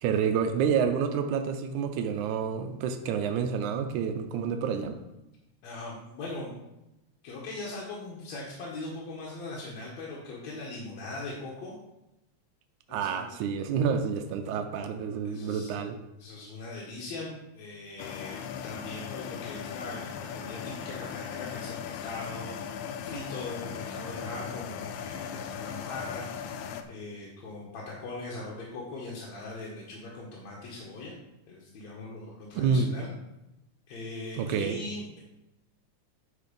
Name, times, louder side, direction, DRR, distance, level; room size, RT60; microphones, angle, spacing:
voice 1, 0.0-5.0 12.9-16.0 32.6-32.9 34.4-34.8, right 6 dB, 90° right, 7 dB, 2.1 m, -28 dB
voice 2, 5.6-6.5 7.2-11.7 12.9-13.3 15.2-15.7 16.2-22.6 23.0-31.2 31.5-33.1 33.9-35.2, left 2 dB, 70° left, -4 dB, 2.5 m, -40 dB
sound 1, 18.0-26.8, left 8 dB, 90° left, 2.1 m, -38 dB
9.3 x 4.7 x 5.2 m, 0.93 s
omnidirectional pair, 3.3 m